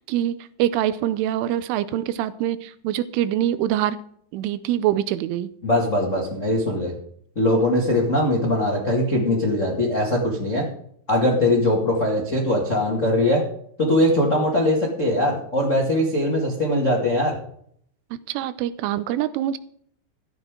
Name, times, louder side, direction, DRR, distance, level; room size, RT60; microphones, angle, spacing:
voice 1, 0.0-4.0 4.3-5.5 18.1-19.6, right 12 dB, 90° right, 14 dB, 3.2 m, -24 dB
voice 2, 5.6-6.9 7.3-10.7 11.1-13.4 13.8-17.4, left 1 dB, 75° left, -2 dB, 0.7 m, -21 dB
14.0 x 11.0 x 3.8 m, 0.64 s
omnidirectional pair, 5.5 m